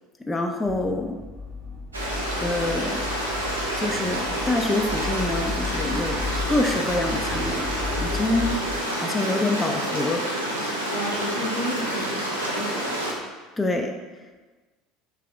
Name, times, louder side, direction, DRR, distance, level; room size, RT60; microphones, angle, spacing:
voice 1, 0.3-1.2 2.4-3.0 3.8-8.6 8.9-10.3 13.6-13.9, left 2 dB, 10° left, 2 dB, 0.4 m, -26 dB
sound 1, 0.7-8.8, left 4 dB, 35° right, 1.0 m, -34 dB
Stream, 1.9-13.1, right 1 dB, 85° right, 0.6 m, -28 dB
voice 2, 10.9-13.0, equal, 75° left, -2 dB, 0.7 m, -32 dB
3.4 x 3.2 x 3.4 m, 1.3 s
figure-of-eight pair, 65°, 0 cm